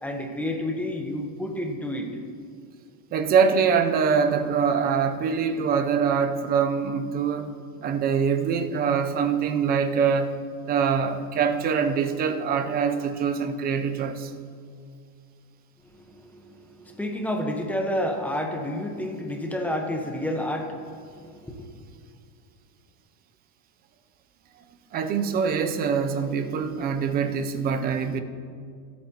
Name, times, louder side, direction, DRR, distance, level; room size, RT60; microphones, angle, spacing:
voice 1, 0.0-2.1 15.9-21.7, left 1 dB, 5° left, 2 dB, 0.9 m, -30 dB
voice 2, 3.1-7.5 7.8-10.4 10.7-14.3 24.9-28.2, right 6 dB, 20° right, 8 dB, 0.4 m, -24 dB
24.0 x 8.7 x 2.8 m, 2.2 s
supercardioid pair, 150°, 46 cm